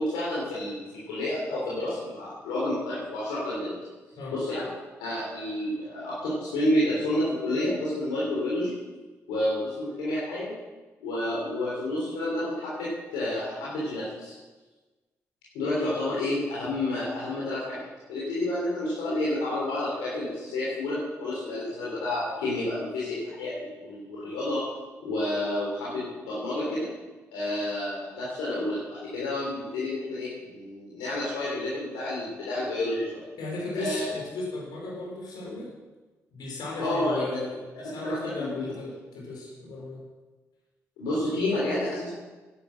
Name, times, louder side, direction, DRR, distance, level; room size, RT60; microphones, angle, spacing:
voice 1, 0.0-3.8 4.3-4.7 5.0-8.7 9.3-10.5 11.0-14.3 15.5-24.6 25.0-26.9 27.3-33.2 33.7-34.0 36.8-37.3 38.0-38.6 41.0-42.1, left 1 dB, 85° left, -8 dB, 3.4 m, -30 dB
voice 2, 33.4-35.7 36.3-40.0, left 2 dB, 70° left, -2 dB, 4.9 m, -36 dB
10.5 x 10.5 x 6.5 m, 1.2 s
hypercardioid pair, 40°, 7 cm